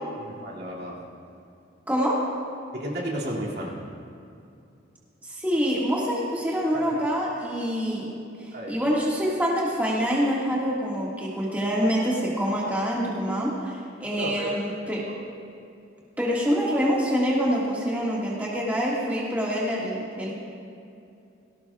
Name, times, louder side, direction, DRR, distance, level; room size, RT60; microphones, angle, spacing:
voice 1, 0.2-1.0 2.7-3.8 6.7-7.0 8.5-8.9 14.1-14.9, right 1 dB, 55° right, -4 dB, 2.6 m, -33 dB
voice 2, 5.3-8.2 8.7-13.7 14.0-15.0 16.2-20.3, equal, 10° right, -6 dB, 1.9 m, -25 dB
19.0 x 17.0 x 2.4 m, 2.6 s
head